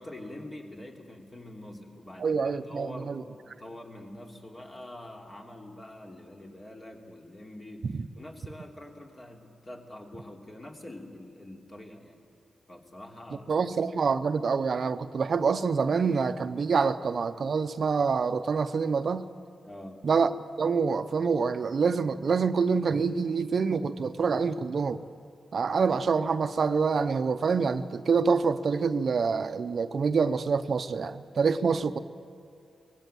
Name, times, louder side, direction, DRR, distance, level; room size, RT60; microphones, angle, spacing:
voice 1, 0.0-12.2 12.7-13.5 19.6-20.1, left 1 dB, 35° left, 1 dB, 3.0 m, -45 dB
voice 2, 2.2-3.2 7.9-8.0 13.5-19.3 20.0-20.3 20.6-25.0 25.5-32.0, right 5 dB, 65° right, 12 dB, 0.6 m, -26 dB
19.0 x 16.0 x 9.1 m, 2.6 s
supercardioid pair, 50°, 0 cm